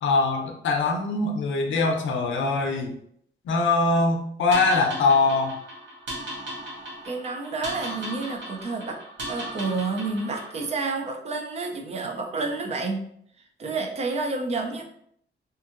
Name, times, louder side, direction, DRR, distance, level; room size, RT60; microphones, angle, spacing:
voice 1, 0.0-2.9 3.5-5.6, left 3 dB, 70° left, 2 dB, 0.5 m, -22 dB
sound 1, 4.5-10.8, right 1 dB, 65° right, 0.8 m, -37 dB
voice 2, 7.0-9.0 9.3-13.1 13.6-14.8, right 3 dB, 35° right, 3 dB, 0.4 m, -29 dB
2.7 x 2.5 x 2.4 m, 0.68 s
wide cardioid pair, 180°, 20 cm